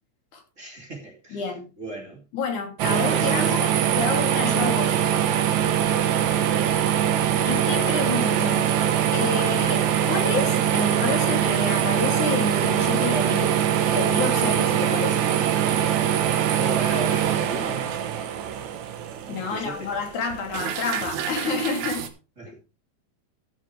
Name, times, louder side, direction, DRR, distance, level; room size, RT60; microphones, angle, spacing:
voice 1, 0.6-1.4 1.8-2.2 2.8-3.6 5.8-6.2 16.6-17.8 19.4-19.9 22.4-22.6, right 1 dB, 25° right, 3.0 m, -35 dB
voice 2, 1.3-1.7 2.3-3.7 4.0-5.0 7.5-8.7 9.1-13.6 13.9-15.3 19.3-22.1, left 4 dB, 85° left, 4.3 m, -29 dB
sound 1, 2.8-22.1, right 10 dB, 75° right, 2.6 m, -23 dB
13.0 x 10.0 x 3.4 m
omnidirectional pair, 3.4 m